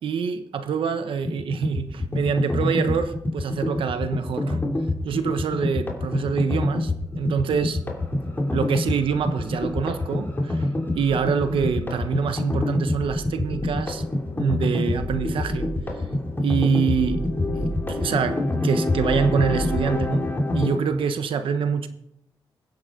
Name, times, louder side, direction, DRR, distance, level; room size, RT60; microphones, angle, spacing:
voice 1, 0.0-4.6 5.0-7.8 8.5-10.7 10.9-14.0 14.4-15.7 16.4-17.3 17.5-20.3 20.5-21.9, right 6 dB, 80° right, 1.2 m, -25 dB
sound 1, 1.3-20.8, left 2 dB, 25° left, 2.9 m, -26 dB
22.0 x 8.2 x 3.9 m
cardioid pair, 70°, 9 cm